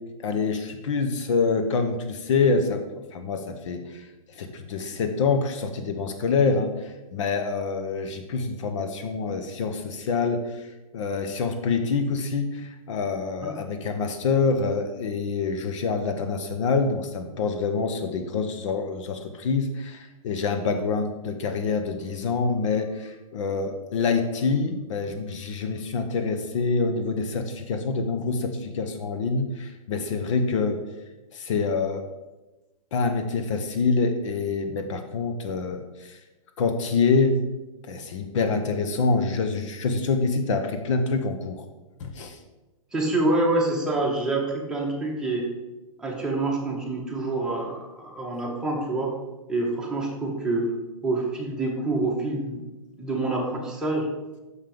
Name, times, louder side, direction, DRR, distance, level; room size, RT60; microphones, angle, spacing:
voice 1, 0.2-30.8 31.3-32.0 32.9-36.2 36.6-37.4 37.8-41.7 42.0-42.4, left 4 dB, 55° left, 7 dB, 0.9 m, -26 dB
voice 2, 42.9-45.5 46.0-49.1 49.5-50.7 51.0-52.6 53.0-54.1, right 2 dB, 5° right, -3 dB, 1.6 m, -26 dB
6.4 x 5.5 x 5.1 m, 1.1 s
hypercardioid pair, 135°, 18 cm